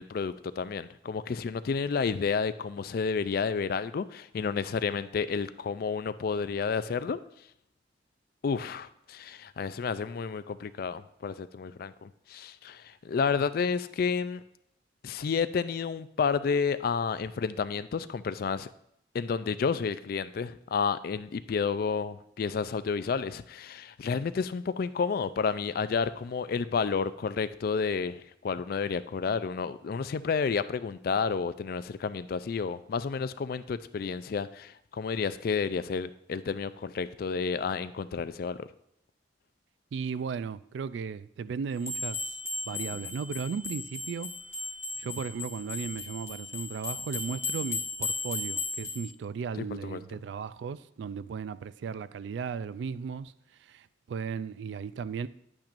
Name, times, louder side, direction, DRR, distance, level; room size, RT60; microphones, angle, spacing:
voice 1, 0.0-7.2 8.4-14.4 15.0-18.7 19.1-38.7 49.8-50.0, left 5 dB, 50° left, 0.3 m, -31 dB
voice 2, 39.9-42.4 42.7-44.3 45.0-53.3 53.6-55.3, right 6 dB, 70° right, 0.3 m, -36 dB
sound 1, 41.8-49.0, left 3 dB, 15° left, 1.3 m, -36 dB
10.5 x 8.7 x 2.5 m
head